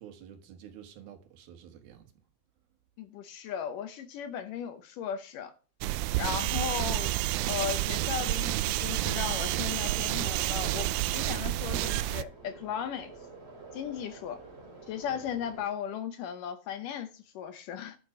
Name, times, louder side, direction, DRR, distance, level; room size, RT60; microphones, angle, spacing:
voice 1, 0.0-2.1 15.1-15.2, right 9 dB, 75° right, 3.4 m, -49 dB
voice 2, 3.0-5.5 6.2-7.2 7.5-13.1 13.7-14.4 14.9-18.0, left 8 dB, 70° left, 2.2 m, -36 dB
sound 1, 5.8-12.2, right 16 dB, 90° right, 2.6 m, -29 dB
sound 2, 9.1-15.6, right 3 dB, 20° right, 2.3 m, -49 dB
10.5 x 7.3 x 4.9 m
omnidirectional pair, 4.5 m